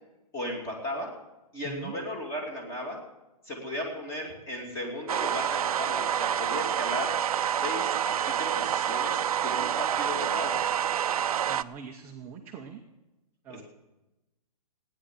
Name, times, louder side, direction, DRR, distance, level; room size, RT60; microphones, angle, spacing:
voice 1, 0.3-1.1 1.5-3.0 3.4-7.2 7.6-10.6 13.5-13.6, left 1 dB, 15° left, 1 dB, 2.7 m, -36 dB
sound 1, 5.1-11.6, right 9 dB, 65° right, 0.6 m, -28 dB
voice 2, 11.5-12.8 13.4-13.6, right 7 dB, 10° right, 1 dB, 0.6 m, -42 dB
15.5 x 10.0 x 7.5 m, 0.99 s
hypercardioid pair, 170°, 20 cm